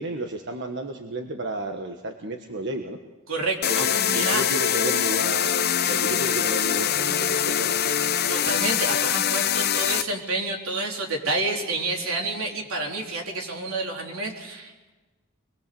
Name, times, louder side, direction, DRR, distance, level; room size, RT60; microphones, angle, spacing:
voice 1, 0.0-3.0 3.7-7.8, right 1 dB, 60° right, 4 dB, 1.4 m, -32 dB
voice 2, 3.3-4.4 8.3-14.9, right 2 dB, 85° right, 1 dB, 4.0 m, -29 dB
sound 1, 3.6-10.0, left 9 dB, 50° left, 0.8 m, -23 dB
25.0 x 21.5 x 7.0 m, 1.2 s
head